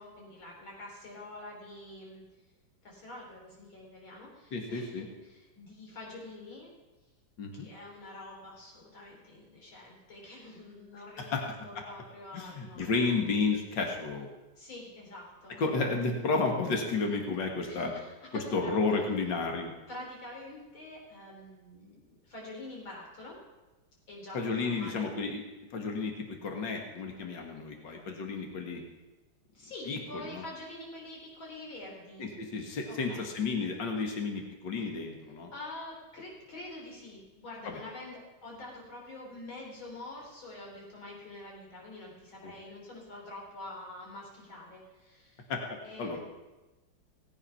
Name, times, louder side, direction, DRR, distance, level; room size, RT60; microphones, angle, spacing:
voice 1, 0.0-2.2 2.8-6.7 7.5-13.2 14.6-15.5 17.6-18.7 19.9-23.4 24.1-25.1 29.5-32.3 32.9-33.2 35.5-45.5 45.8-46.2, left 2 dB, 85° left, -2 dB, 4.4 m, -46 dB
voice 2, 4.5-5.1 7.4-7.7 11.2-11.4 12.3-14.3 15.6-17.9 18.3-19.7 24.3-25.4 25.7-28.8 29.9-30.4 32.2-35.5 37.7-37.8 42.4-42.5 45.5-46.2, left 4 dB, 65° left, 2 dB, 2.4 m, -32 dB
18.5 x 8.7 x 5.7 m, 1.1 s
omnidirectional pair, 2.1 m